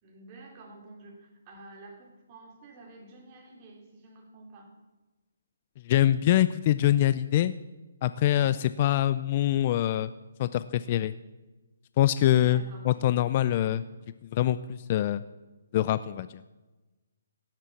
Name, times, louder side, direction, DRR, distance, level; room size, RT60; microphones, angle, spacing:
voice 1, 0.0-4.7 8.3-8.6 12.2-13.0 13.6-13.9, right 2 dB, 25° right, 0 dB, 3.2 m, -50 dB
voice 2, 5.9-7.5 8.0-10.1 10.4-11.1 12.0-13.8 14.3-15.2 15.7-16.4, left 12 dB, 30° left, 14 dB, 0.4 m, -24 dB
16.5 x 7.5 x 8.4 m, 1.2 s
hypercardioid pair, 160°, 0 cm